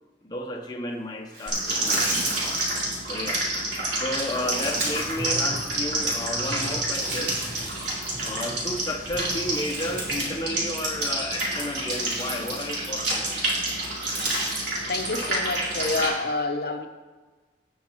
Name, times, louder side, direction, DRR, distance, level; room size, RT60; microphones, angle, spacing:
voice 1, 0.2-3.5 4.0-7.5 8.2-13.4, left 1 dB, 20° left, 0.7 m, -33 dB
sound 1, 1.3-3.3 4.0-6.1 6.4-8.6 9.0-10.4 10.7-10.8 11.5-13.1 13.8-14.8, right 2 dB, 70° right, 3.4 m, -36 dB
sound 2, 1.5-16.1, right 2 dB, 90° right, 3.5 m, -29 dB
sound 3, 4.7-10.8, equal, 25° right, 2.0 m, -41 dB
voice 2, 14.9-16.9, left 3 dB, 60° left, 0.8 m, -28 dB
18.0 x 6.4 x 2.9 m
head